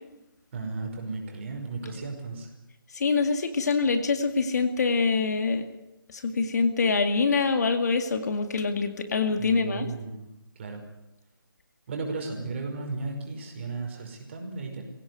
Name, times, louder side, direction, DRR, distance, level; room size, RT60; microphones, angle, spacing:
voice 1, 0.5-2.5 9.4-10.3 10.6-10.8 11.9-14.8, right 3 dB, 30° right, 2 dB, 5.4 m, -34 dB
voice 2, 2.9-5.6 6.1-9.9, left 4 dB, 45° left, 7 dB, 2.2 m, -25 dB
22.5 x 17.0 x 9.6 m, 0.92 s
figure-of-eight pair, 165°, 12 cm